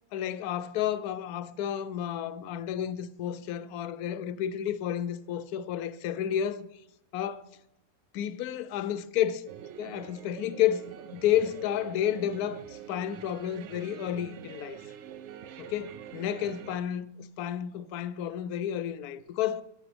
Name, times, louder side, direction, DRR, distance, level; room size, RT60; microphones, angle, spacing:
voice 1, 0.1-6.7 7.1-7.4 8.1-9.5 9.8-14.8 15.6-19.6, left 10 dB, 75° left, 1.0 m, -31 dB
sound 1, 9.5-16.8, right 10 dB, 65° right, 0.7 m, -45 dB
14.0 x 9.8 x 3.4 m
omnidirectional pair, 1.7 m